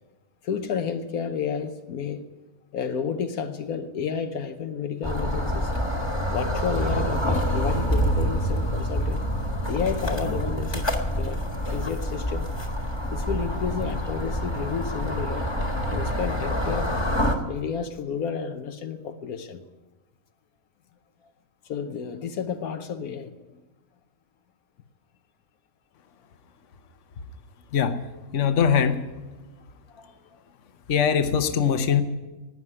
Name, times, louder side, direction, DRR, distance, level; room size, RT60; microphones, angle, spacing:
voice 1, 0.4-2.3 2.7-5.7 6.3-9.2 9.7-12.5 13.1-15.5 15.9-17.1 17.5-19.6 21.6-23.6 29.5-30.4, left 6 dB, 80° left, 8 dB, 1.3 m, -31 dB
sound 1, 5.0-17.4, equal, 20° left, 1.6 m, -27 dB
voice 2, 28.3-29.0 30.9-32.0, left 7 dB, 60° left, 9 dB, 1.2 m, -21 dB
12.5 x 9.3 x 9.8 m, 1.1 s
omnidirectional pair, 1.5 m